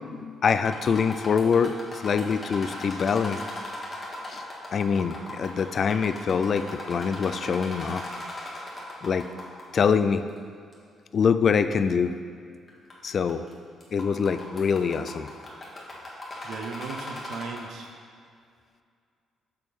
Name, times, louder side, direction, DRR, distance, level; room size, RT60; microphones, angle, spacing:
voice 1, 0.0-1.7 2.0-3.4 4.3-4.4 4.7-8.0 9.0-9.2 9.7-10.2 11.1-12.1 13.0-13.4 13.9-15.3, left 6 dB, 50° left, 11 dB, 0.3 m, -24 dB
sound 1, 0.6-9.6 9.9-10.0 10.7-10.8 11.5-11.6 12.7-12.9 13.3-13.5 13.8-17.9, left 1 dB, 30° left, 1.6 m, -38 dB
voice 2, 16.1-17.9, right 5 dB, 80° right, 3 dB, 0.7 m, -38 dB
6.7 x 3.6 x 6.1 m, 2.2 s
cardioid pair, 90°, 0 cm